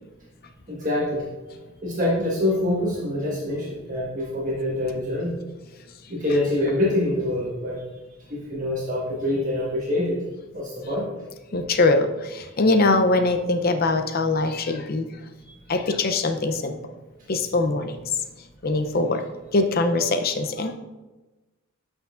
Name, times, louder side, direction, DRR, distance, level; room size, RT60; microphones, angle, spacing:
voice 1, 0.7-1.3 1.8-5.4 6.1-7.8 8.3-10.2 10.5-11.1 15.4-15.5, left 1 dB, 35° right, -6 dB, 1.4 m, -25 dB
voice 2, 11.5-15.1 15.7-16.8 17.3-18.0 18.6-19.2 19.5-20.8, left 2 dB, 45° left, 8 dB, 0.6 m, -22 dB
11.5 x 6.2 x 2.5 m, 1.1 s
head